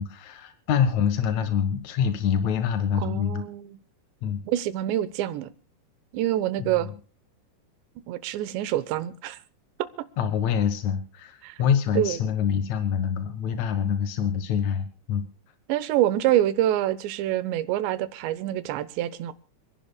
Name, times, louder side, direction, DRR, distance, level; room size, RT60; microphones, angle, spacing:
voice 1, 0.0-3.4 4.2-4.4 6.6-6.9 10.2-15.2, left 8 dB, 65° left, 2.0 m, -26 dB
voice 2, 3.0-3.8 4.5-5.5 6.1-6.9 8.1-9.4 11.4-11.6 11.9-12.2 15.7-19.3, right 13 dB, 90° right, 3.2 m, -26 dB
29.5 x 11.0 x 2.3 m
omnidirectional pair, 4.9 m